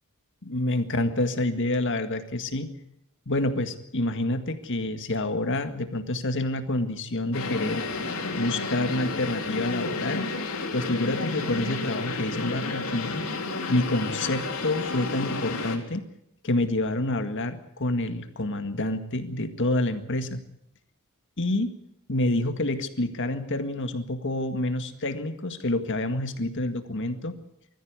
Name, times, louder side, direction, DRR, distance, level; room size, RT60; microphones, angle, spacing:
voice 1, 0.4-2.7 3.3-7.8 8.4-10.3 10.7-13.2 13.7-16.1 16.4-20.4 21.4-21.8 22.1-27.4, left 1 dB, 60° left, 8 dB, 1.9 m, -28 dB
sound 1, 7.3-15.8, left 3 dB, 80° left, 3.8 m, -31 dB
22.0 x 14.0 x 9.6 m, 0.78 s
head